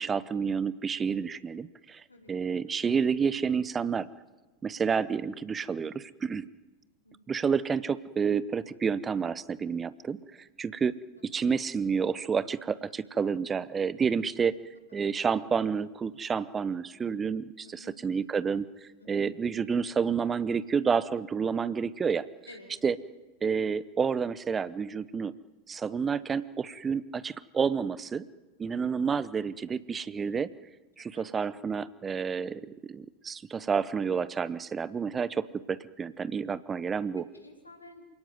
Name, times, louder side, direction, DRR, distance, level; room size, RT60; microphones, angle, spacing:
voice 1, 0.0-2.0 2.3-4.1 4.6-6.5 7.3-10.2 10.6-11.0 11.3-14.6 14.9-22.3 22.8-23.0 23.4-25.3 25.7-28.3 28.6-30.5 31.0-37.2, right 6 dB, 20° right, 18 dB, 0.8 m, -29 dB
voice 2, 7.0-7.4 11.4-11.5 17.6-17.9 19.0-19.3 22.5-22.8 31.0-31.2 33.6-33.7 37.3-38.0, left 2 dB, 85° left, 0 dB, 4.9 m, -52 dB
27.5 x 18.0 x 9.4 m, 1.2 s
figure-of-eight pair, 90°, 0 cm